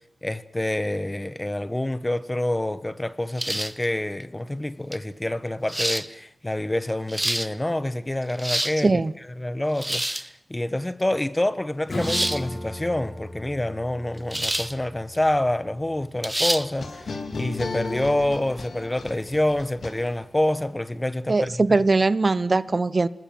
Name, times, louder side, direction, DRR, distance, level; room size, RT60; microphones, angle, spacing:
voice 1, 0.2-8.9 9.4-21.6, left 1 dB, 15° left, 1.3 m, -27 dB
sound 1, 3.4-3.9 4.9-5.0 5.7-6.1 6.9-7.5 8.2-8.8 9.8-10.3 12.0-12.4 14.3-14.7 15.1-15.2 16.2-16.7, right 1 dB, 10° right, 1.0 m, -26 dB
voice 2, 8.8-9.1 21.3-23.1, right 3 dB, 40° right, 0.9 m, -21 dB
Acoustic guitar / Strum, 11.9-17.1, left 1 dB, 60° left, 6.5 m, -37 dB
sound 2, 16.8-20.5, left 4 dB, 85° left, 3.7 m, -34 dB
27.0 x 20.5 x 7.7 m
wide cardioid pair, 90°, 0 cm